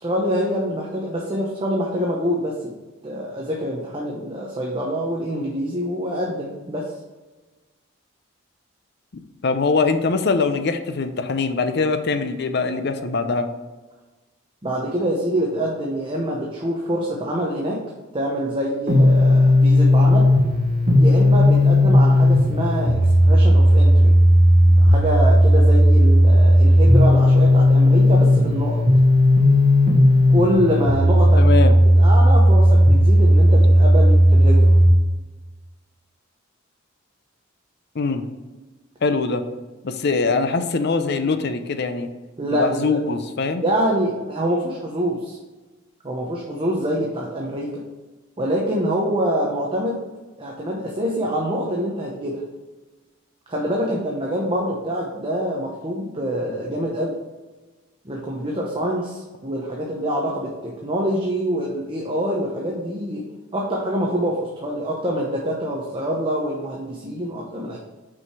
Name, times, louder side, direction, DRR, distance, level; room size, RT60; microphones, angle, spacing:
voice 1, 0.0-2.7 3.0-6.9 14.6-17.8 18.1-20.3 20.9-24.2 24.7-28.8 30.3-31.4 32.0-34.8 42.4-43.0 43.6-45.4 46.0-47.8 48.4-50.0 50.4-52.4 53.5-57.1 58.0-63.3 63.5-67.8, equal, 25° right, -2 dB, 0.8 m, -25 dB
voice 2, 9.1-13.5 31.4-31.8 37.9-38.2 39.0-39.4 39.8-42.1 42.5-43.6, left 4 dB, 55° left, 8 dB, 0.6 m, -22 dB
sound 1, 18.9-34.9, equal, 50° right, 1.2 m, -14 dB
6.0 x 4.9 x 4.6 m, 1.2 s
head